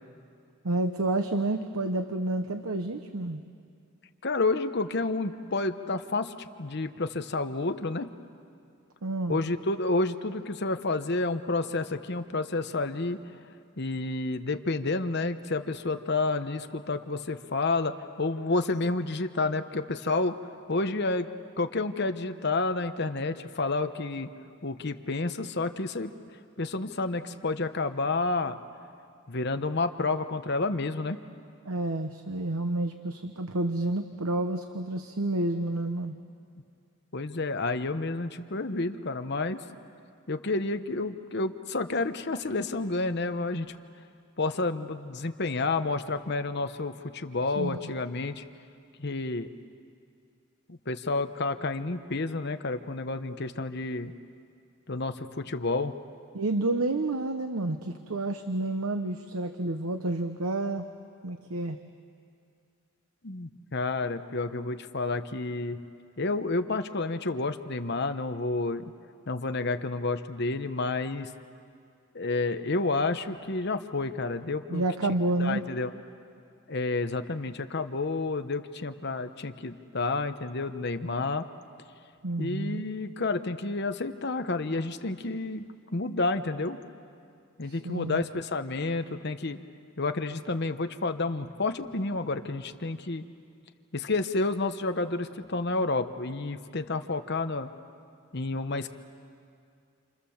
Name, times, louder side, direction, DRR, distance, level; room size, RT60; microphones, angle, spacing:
voice 1, 0.6-3.4 9.0-9.4 31.6-36.1 47.5-47.8 56.3-60.9 61.2-61.8 74.7-75.6 82.2-82.8 87.6-88.2, right 2 dB, 85° right, 7 dB, 1.0 m, -29 dB
voice 2, 4.2-8.1 9.3-13.2 13.8-20.4 20.7-21.3 21.6-24.3 24.6-26.1 26.6-28.6 29.3-31.2 37.1-39.6 40.3-43.7 44.4-48.4 49.0-49.5 50.7-54.1 54.9-55.9 63.2-65.8 66.2-68.9 69.3-71.3 72.1-74.8 75.4-75.9 76.7-81.5 82.4-85.7 85.9-86.8 87.6-89.6 90.0-93.2 93.9-97.7 98.3-98.9, left 3 dB, 50° left, 8 dB, 1.0 m, -30 dB
29.0 x 28.0 x 7.2 m, 2.4 s
head